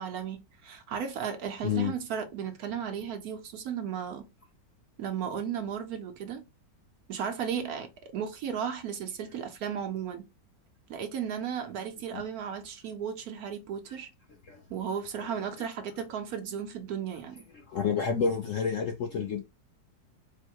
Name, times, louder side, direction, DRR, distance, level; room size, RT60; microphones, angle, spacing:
voice 1, 0.0-4.3 5.0-6.4 7.1-10.3 10.9-14.1 14.7-17.4, right 8 dB, 65° right, 1.0 m, -35 dB
voice 2, 17.5-19.4, left 6 dB, 65° left, 0.8 m, -29 dB
4.4 x 2.1 x 4.5 m
omnidirectional pair, 1.9 m